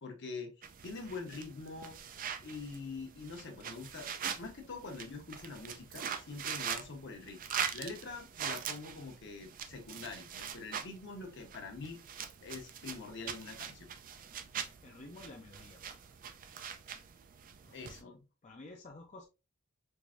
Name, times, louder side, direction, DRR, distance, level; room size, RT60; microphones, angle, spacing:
voice 1, 0.0-2.0 2.4-7.4 7.7-12.0 12.4-13.9 17.7-18.2, left 3 dB, 55° left, 3 dB, 0.9 m, -45 dB
sound 1, 0.6-18.0, right 7 dB, 40° right, 0.4 m, -43 dB
voice 2, 14.5-16.0 17.6-19.3, left 2 dB, 35° left, 0 dB, 0.5 m, -52 dB
4.6 x 2.6 x 2.4 m, 0.28 s
head